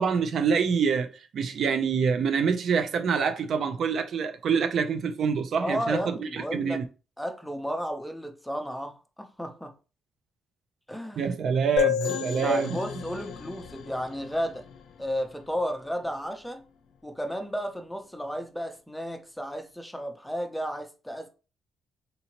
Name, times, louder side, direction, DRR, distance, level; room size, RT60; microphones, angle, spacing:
voice 1, 0.0-6.8 11.2-12.8, right 6 dB, 60° right, 0.4 m, -26 dB
voice 2, 5.5-6.8 7.2-9.7 10.9-11.3 12.3-14.6 15.0-16.6 17.0-21.3, equal, 5° left, 0.6 m, -33 dB
sound 1, 11.8-15.3, left 10 dB, 70° left, 0.5 m, -32 dB
3.9 x 2.8 x 2.9 m
cardioid pair, 110°, 0 cm